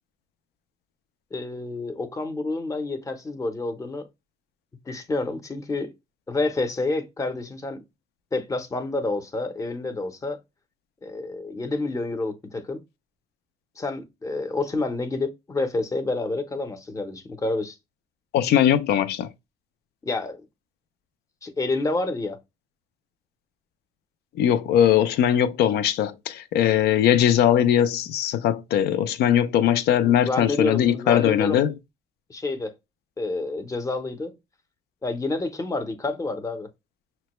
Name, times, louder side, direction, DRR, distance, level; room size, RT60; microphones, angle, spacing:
voice 1, 1.3-4.1 4.9-5.9 6.3-7.8 8.3-10.4 11.0-12.8 13.8-17.7 20.0-20.4 21.4-22.4 30.0-31.6 32.3-32.7 33.2-34.3 35.0-36.7, left 2 dB, 20° left, 0.7 m, -28 dB
voice 2, 18.3-19.3 24.4-31.7, left 10 dB, 70° left, 0.5 m, -20 dB
5.8 x 2.2 x 3.0 m
cardioid pair, 110°, 17 cm